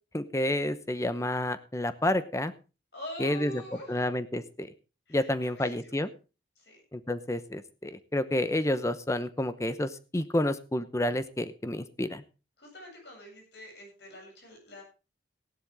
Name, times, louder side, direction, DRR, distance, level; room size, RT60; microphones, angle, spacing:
voice 1, 0.1-2.5 3.2-3.6 3.9-4.7 5.1-6.1 6.9-12.2, left 1 dB, 15° left, 12 dB, 0.8 m, -30 dB
voice 2, 2.9-4.0 5.1-5.3 5.6-5.9 6.6-6.8 12.6-14.8, left 1 dB, 70° left, 1 dB, 7.8 m, -45 dB
16.0 x 11.5 x 3.5 m, 0.32 s
head